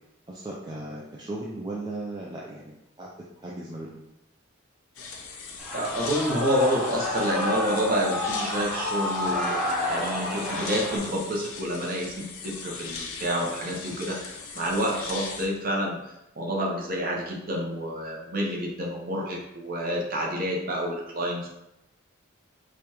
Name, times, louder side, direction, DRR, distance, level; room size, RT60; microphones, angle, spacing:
voice 1, 0.3-3.1 3.4-4.0, right 2 dB, 20° right, -4 dB, 0.3 m, -37 dB
sound 1, 4.9-15.5, left 4 dB, 80° left, 0.6 m, -39 dB
Shout / Cheering, 5.6-11.0, left 1 dB, ahead, 0.7 m, -30 dB
voice 2, 5.7-21.5, equal, 40° right, -2 dB, 0.8 m, -28 dB
5.0 x 2.3 x 2.9 m, 0.87 s
head